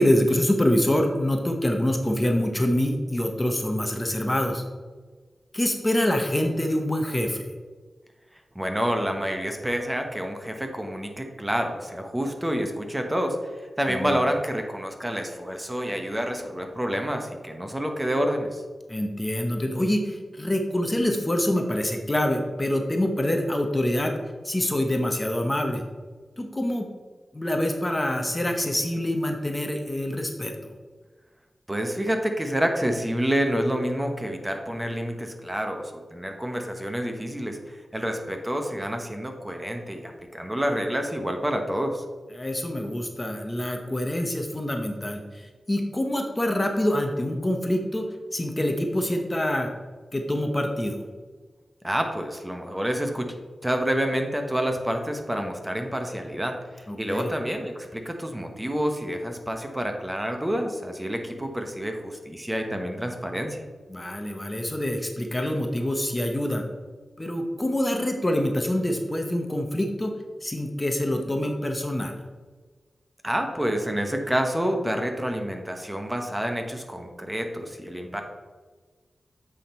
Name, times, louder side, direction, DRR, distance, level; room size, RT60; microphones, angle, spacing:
voice 1, 0.0-4.6 5.5-7.5 13.9-14.2 18.9-24.1 24.4-25.8 26.4-26.8 27.3-30.7 42.3-49.7 50.1-51.0 56.9-57.3 63.9-66.6 67.2-70.1 70.4-72.2, left 1 dB, 20° left, 4 dB, 0.9 m, -26 dB
voice 2, 8.5-18.6 31.7-42.0 51.8-53.3 53.6-63.6 73.2-78.2, equal, 15° right, 4 dB, 1.0 m, -28 dB
8.4 x 3.7 x 4.3 m, 1.4 s
cardioid pair, 55°, 0 cm